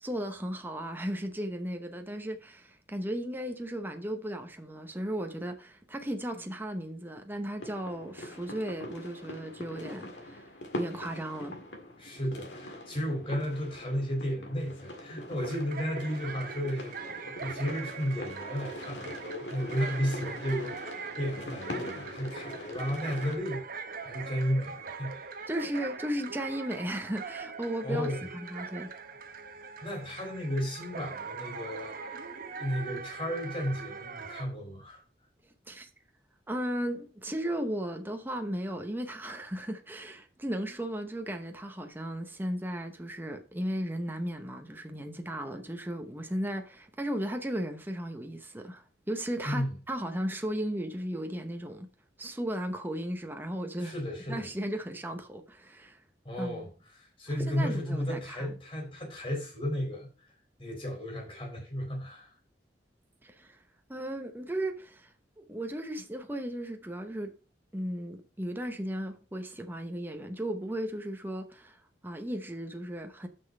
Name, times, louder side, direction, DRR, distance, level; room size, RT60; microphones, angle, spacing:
voice 1, 0.0-10.5 10.8-11.6 25.5-28.1 28.3-28.9 35.7-35.9 36.5-51.9 52.2-53.9 54.3-56.0 56.4-56.6 57.4-58.5 63.2-63.6 63.9-67.4 67.7-73.3, right 1 dB, 10° right, 0.8 m, -35 dB
sound 1, 7.6-23.4, left 1 dB, 80° left, 1.9 m, -43 dB
voice 2, 12.0-23.6 24.0-25.3 27.8-28.3 29.8-35.0 49.4-49.8 53.8-54.5 56.2-56.7 56.9-60.3 60.6-62.3, equal, 30° left, 4.3 m, -34 dB
sound 2, 15.4-34.4, right 5 dB, 55° right, 0.9 m, -42 dB
6.7 x 6.0 x 5.4 m
head